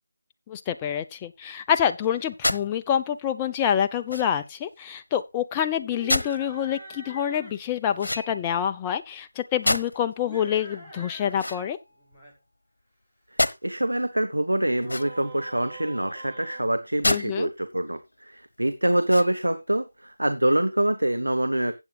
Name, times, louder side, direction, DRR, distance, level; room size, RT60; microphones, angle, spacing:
voice 1, 0.5-11.8 17.0-17.5, left 9 dB, 15° left, 0.6 m, -27 dB
sound 1, 2.4-2.7 4.1-4.5 6.1-6.4 8.0-8.6 9.6-10.1 11.3-12.2 13.4-13.6 14.8-15.4 17.0-17.3 17.8-17.9 19.0-19.6, left 2 dB, 70° left, 1.1 m, -28 dB
sound 2, 5.8-7.6 10.1-11.7 12.0-12.3 14.5-17.4, right 1 dB, 10° right, 3.6 m, -44 dB
voice 2, 13.3-21.7, right 1 dB, 90° right, 1.2 m, -25 dB
15.5 x 8.2 x 2.4 m
figure-of-eight pair, 160°, 0 cm